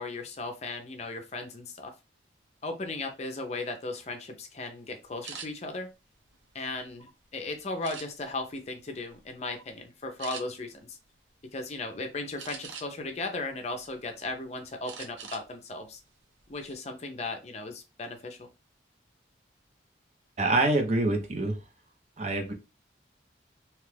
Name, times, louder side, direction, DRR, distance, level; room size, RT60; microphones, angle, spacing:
voice 1, 0.0-1.9 2.6-5.9 6.5-11.0 11.5-16.0 16.5-18.5, left 2 dB, 35° left, 5 dB, 0.5 m, -36 dB
sound 1, 5.2-5.5 6.1-7.1 7.8-8.4 8.9-9.2 9.5-9.7 10.2-10.4 12.4-13.1 13.6-14.3 14.8-15.5 15.8-16.0 16.4-16.8, right 6 dB, 90° right, 0.7 m, -43 dB
voice 2, 20.4-21.6 22.2-22.5, right 2 dB, 35° right, 4 dB, 0.6 m, -26 dB
2.9 x 2.3 x 3.2 m, 0.28 s
head